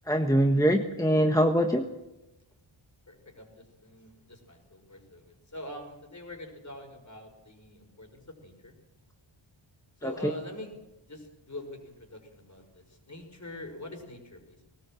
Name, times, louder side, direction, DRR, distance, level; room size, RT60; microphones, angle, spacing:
voice 1, 0.1-1.8 10.0-10.3, equal, 5° left, 4 dB, 1.4 m, -23 dB
voice 2, 3.1-8.7 10.0-10.8 11.1-14.6, left 1 dB, 35° left, 4 dB, 5.7 m, -44 dB
20.0 x 18.5 x 7.7 m, 0.98 s
wide cardioid pair, 110°, 47 cm